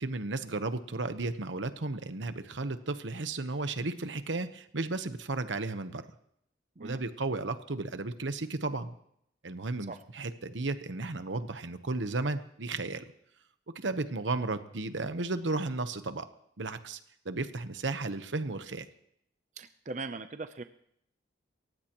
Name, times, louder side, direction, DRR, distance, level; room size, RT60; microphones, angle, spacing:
voice 1, 0.0-6.0 6.8-9.0 9.4-13.0 13.7-16.3 16.6-17.0 17.2-18.9, right 3 dB, 90° right, 10 dB, 1.1 m, -34 dB
voice 2, 19.6-20.6, right 3 dB, 40° right, 10 dB, 0.6 m, -40 dB
28.0 x 15.5 x 3.0 m, 0.72 s
head